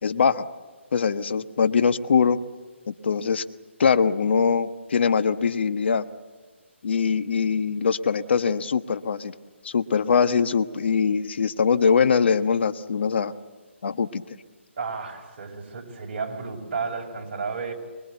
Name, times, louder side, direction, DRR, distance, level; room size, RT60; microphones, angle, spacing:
voice 1, 0.0-0.4 0.9-2.4 2.9-3.4 3.8-6.0 6.8-9.3 9.6-13.3 13.8-14.2, left 6 dB, 60° left, 11 dB, 1.2 m, -22 dB
voice 2, 14.8-17.7, right 5 dB, 45° right, 1 dB, 5.3 m, -32 dB
25.0 x 23.0 x 8.1 m, 1.4 s
hypercardioid pair, 155°, 7 cm